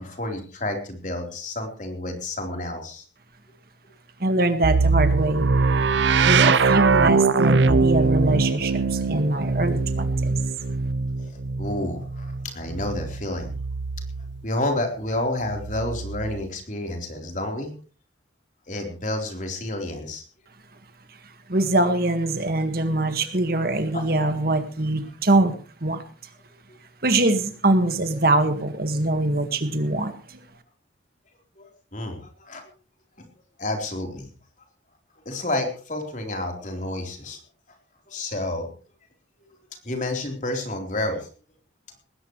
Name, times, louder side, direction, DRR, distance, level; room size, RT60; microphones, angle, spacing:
voice 1, 0.0-3.0 11.6-13.5 14.4-17.7 18.7-20.2 23.9-24.0 26.7-26.8 31.6-32.6 33.6-34.3 35.3-37.4 38.1-38.7 39.8-41.3, left 1 dB, 40° left, 3 dB, 4.0 m, -30 dB
voice 2, 4.2-5.5 6.2-10.3 21.5-25.5 25.8-26.0 27.0-30.4, right 2 dB, 50° right, 8 dB, 1.8 m, -23 dB
sound 1, 4.6-14.5 15.5-16.5, right 4 dB, 70° right, 0.7 m, -22 dB
20.0 x 17.0 x 3.2 m, 0.38 s
head